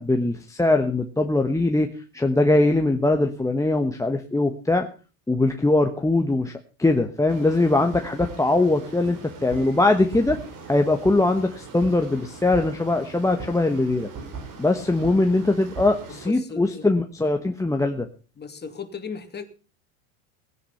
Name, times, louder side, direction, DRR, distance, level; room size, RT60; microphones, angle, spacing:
voice 1, 0.0-4.9 5.3-10.4 10.7-14.1 14.6-18.1, left 2 dB, 5° left, 1.2 m, -21 dB
sound 1, 7.3-16.3, right 4 dB, 45° right, 4.3 m, -39 dB
voice 2, 16.1-16.9 18.4-19.4, left 5 dB, 25° left, 2.8 m, -36 dB
18.0 x 10.0 x 5.6 m
supercardioid pair, 105°, 44 cm